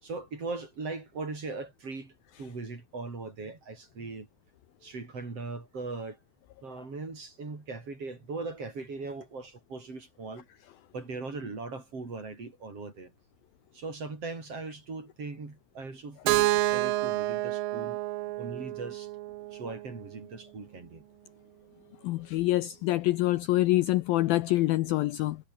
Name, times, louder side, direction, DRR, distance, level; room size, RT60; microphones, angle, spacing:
voice 1, 0.0-4.3 4.8-6.2 6.6-10.5 10.9-13.1 13.7-18.0 18.4-19.1 19.5-21.1, right 3 dB, 35° right, 5.9 m, -39 dB
Keyboard (musical), 16.3-20.2, right 17 dB, 85° right, 2.0 m, -29 dB
voice 2, 22.0-25.4, left 17 dB, 85° left, 2.1 m, -26 dB
omnidirectional pair, 5.1 m